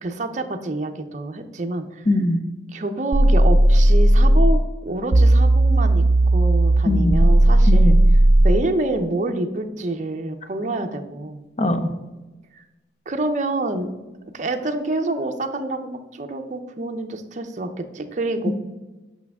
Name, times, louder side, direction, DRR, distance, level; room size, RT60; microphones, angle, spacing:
voice 1, 0.0-2.0 2.7-6.0 6.3-8.0 8.4-11.4 12.5-12.6 13.1-13.9 14.3-18.5, right 2 dB, 40° right, 6 dB, 0.6 m, -27 dB
voice 2, 2.1-2.4 6.8-7.2 7.7-8.0 11.6-11.9, left 1 dB, 35° left, 8 dB, 0.6 m, -21 dB
sound 1, 3.1-4.6 5.1-8.6, right 1 dB, 80° right, 0.6 m, -14 dB
8.4 x 5.8 x 3.5 m, 1.1 s
head